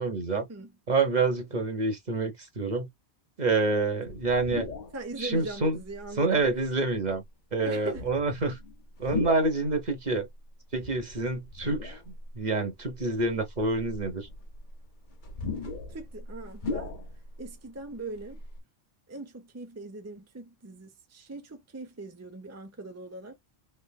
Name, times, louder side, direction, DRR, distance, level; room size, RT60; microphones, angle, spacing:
voice 1, 0.0-0.5 0.9-2.9 3.4-4.7 5.2-5.8 6.2-7.2 7.5-8.6 9.0-10.3 10.7-12.0 12.3-14.3, right 3 dB, 45° right, 1.0 m, -27 dB
sound 1, 4.1-5.0 5.7-5.8 6.8-7.1 7.9-9.6 10.7-12.3 12.8-12.9 13.5-17.5 17.8-17.9 18.1-18.6, left 3 dB, 50° left, 1.1 m, -38 dB
voice 2, 4.9-6.4 7.6-8.0 15.9-16.9 17.4-18.4 19.1-23.4, right 2 dB, 15° right, 0.6 m, -40 dB
3.4 x 3.2 x 2.2 m
omnidirectional pair, 1.1 m